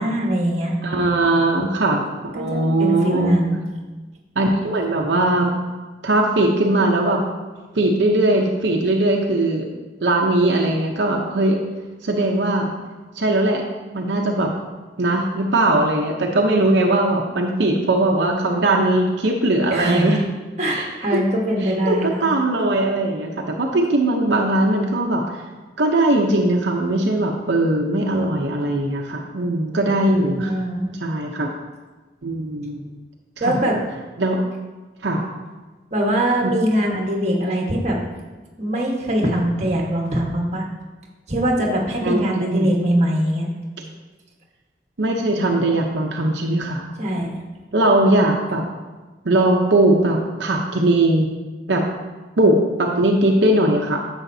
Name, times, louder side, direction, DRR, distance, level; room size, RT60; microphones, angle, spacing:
voice 1, 0.0-0.8 2.4-3.6 19.7-20.2 20.6-22.3 30.0-30.9 33.4-33.8 35.9-38.0 38.6-40.6 41.3-43.5 47.0-47.4, right 1 dB, 40° right, -1 dB, 1.4 m, -22 dB
voice 2, 0.8-2.0 2.3-3.3 4.4-5.6 6.0-7.2 7.7-9.7 10.0-11.6 12.0-12.7 13.2-13.6 13.9-14.5 15.0-20.2 20.7-20.9 21.6-25.4 25.8-30.5 31.0-31.5 32.2-32.8 33.4-33.6 34.2-34.4 35.0-35.3 36.4-36.5 42.0-42.7 45.0-46.9 47.7-48.6 49.2-51.3 51.7-51.8 52.4-54.0, right 1 dB, 75° right, 0 dB, 0.8 m, -19 dB
10.0 x 7.2 x 2.7 m, 1.3 s
head